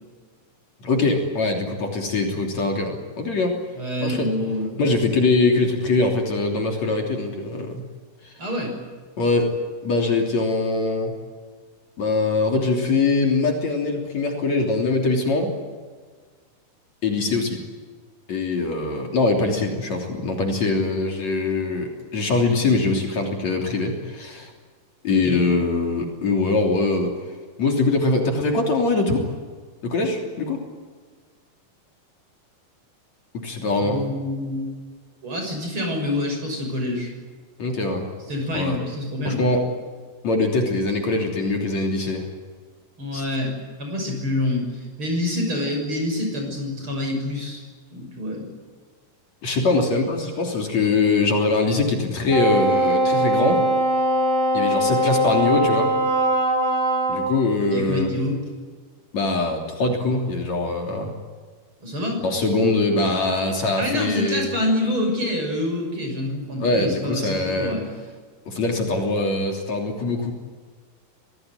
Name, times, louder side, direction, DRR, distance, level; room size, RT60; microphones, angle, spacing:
voice 1, 0.8-3.6 4.0-4.3 4.8-7.8 8.2-8.3 9.2-9.5 9.8-11.1 12.0-15.5 17.0-17.6 18.3-24.5 25.0-27.1 27.6-29.3 29.8-30.6 33.4-34.0 37.6-38.1 38.5-38.8 39.2-39.6 40.2-42.3 43.1-43.2 49.4-53.6 54.5-55.9 57.1-58.1 59.1-61.1 62.2-64.4 66.6-67.7 68.5-70.3, left 3 dB, 55° left, 2 dB, 4.4 m, -22 dB
voice 2, 3.7-4.8 8.4-8.7 25.1-25.4 33.8-34.7 35.2-37.1 38.3-39.4 43.0-43.5 43.8-47.6 47.9-48.5 57.7-58.4 61.8-62.2 63.8-67.9, left 1 dB, 35° right, 3 dB, 7.1 m, -26 dB
Wind instrument woodwind instrument, 52.3-57.4, right 1 dB, 90° right, 6.5 m, -21 dB
26.0 x 18.5 x 9.6 m, 1.5 s
omnidirectional pair, 3.9 m